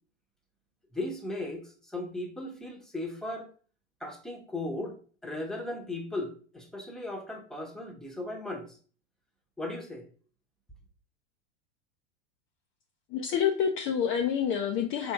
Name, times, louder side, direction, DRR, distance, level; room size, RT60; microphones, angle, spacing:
voice 1, 0.9-3.5 4.0-5.0 5.2-8.8 9.6-10.0, left 2 dB, ahead, 0.9 m, -37 dB
voice 2, 13.1-15.1, left 8 dB, 35° left, 0.5 m, -28 dB
4.1 x 3.5 x 2.9 m
hypercardioid pair, 100°, 36 cm